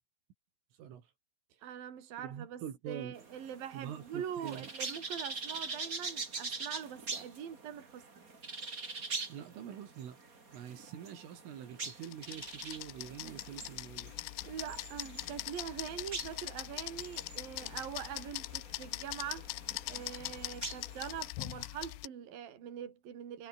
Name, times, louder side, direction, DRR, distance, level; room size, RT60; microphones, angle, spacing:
voice 1, 1.6-8.2 14.5-19.5 19.9-23.5, right 9 dB, 50° right, 4.9 m, -43 dB
voice 2, 2.2-3.2 3.7-4.7 9.3-10.2 10.5-14.2, right 9 dB, 80° right, 5.6 m, -45 dB
sound 1, 3.1-21.3, right 4 dB, 25° right, 2.4 m, -44 dB
sound 2, 11.8-22.1, left 23 dB, 85° left, 2.6 m, -42 dB
omnidirectional pair, 5.7 m